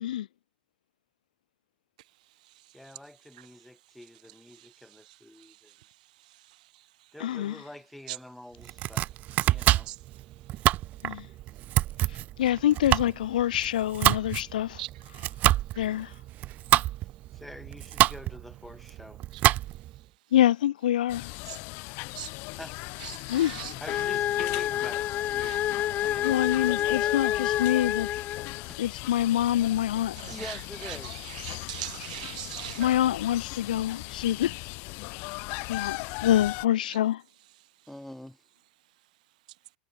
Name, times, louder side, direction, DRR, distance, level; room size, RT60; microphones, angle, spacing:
voice 1, 2.0-7.2 7.6-7.7 8.1-8.2 8.6-11.3 11.5-11.8 14.1-14.4 14.8-15.9 16.5-17.2 19.3-20.3 21.5-21.6 22.1-22.4 23.0-24.1 25.4-26.1 27.0-27.1 30.2-32.9 34.0-34.1 35.0-36.3 36.9-37.0 37.5-38.0 38.8-39.6, right 17 dB, 70° right, 5.5 m, -46 dB
voice 2, 2.7-5.7 7.1-9.9 17.3-19.2 22.6-22.8 23.8-26.5 30.3-31.1 37.9-38.4, left 1 dB, 5° left, 4.4 m, -46 dB
voice 3, 7.2-7.6 11.0-11.3 12.4-14.8 15.8-16.1 20.3-21.3 23.3-23.5 26.2-28.1 28.8-30.1 32.8-34.5 35.7-37.2, left 12 dB, 85° left, 0.5 m, -26 dB
Domestic sounds home sounds, 8.6-20.0, right 15 dB, 40° right, 0.9 m, -27 dB
sound 1, 21.1-36.7, left 28 dB, 50° left, 3.5 m, -39 dB
sound 2, 23.9-28.7, left 12 dB, 35° left, 1.0 m, -28 dB
hypercardioid pair, 125°, 4 cm